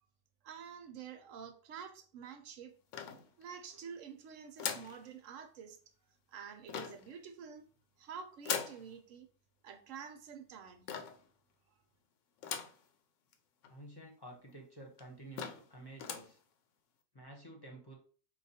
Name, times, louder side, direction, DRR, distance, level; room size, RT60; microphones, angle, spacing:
voice 1, 0.4-2.7 3.4-5.8 6.3-7.6 8.0-9.3 9.6-10.9, right 7 dB, 80° right, 7 dB, 1.1 m, -48 dB
sound 1, 2.9-3.7 4.6-5.0 6.7-7.1 8.4-8.8 10.9-11.3 12.4-12.8 13.3-13.4 13.6-13.7 14.5-14.6 15.0-15.1 15.4-15.7 16.0-16.3, left 7 dB, 75° left, 0.9 m, -40 dB
voice 2, 13.7-16.4 17.1-17.9, right 1 dB, 20° left, 1 dB, 0.8 m, -51 dB
4.5 x 2.3 x 4.2 m, 0.41 s
omnidirectional pair, 1.3 m